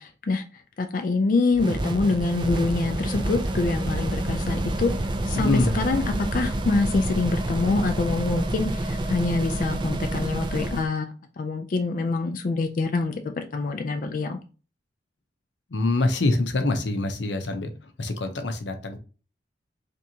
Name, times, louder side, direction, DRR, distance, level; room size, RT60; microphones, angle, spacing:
voice 1, 0.0-14.4, left 3 dB, 50° left, 6 dB, 0.3 m, -26 dB
sound 1, 1.5-10.9, right 1 dB, 25° right, 0.4 m, -28 dB
voice 2, 5.3-5.8 15.7-17.7 18.0-19.0, left 2 dB, 90° left, 7 dB, 0.6 m, -25 dB
3.3 x 2.8 x 2.7 m, 0.36 s
head